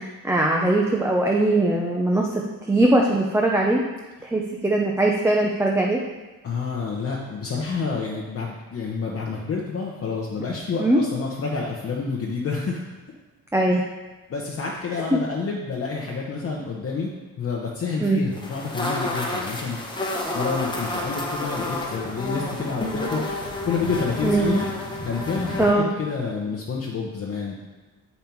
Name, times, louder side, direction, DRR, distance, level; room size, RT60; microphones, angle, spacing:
voice 1, 0.0-3.8 4.2-6.0 10.8-11.0 13.5-13.8 15.1-15.2 18.0-18.2 24.2-24.5 25.6-25.9, right 2 dB, 10° right, -1 dB, 0.5 m, -21 dB
voice 2, 6.4-12.9 13.7-13.8 14.3-17.1 17.4-19.8 20.3-24.7 25.0-27.6, left 4 dB, 40° left, -3 dB, 0.9 m, -29 dB
sound 1, 18.3-25.7, left 1 dB, 15° left, 1.0 m, -30 dB
7.1 x 5.4 x 4.5 m, 1.2 s
cardioid pair, 145°, 35 cm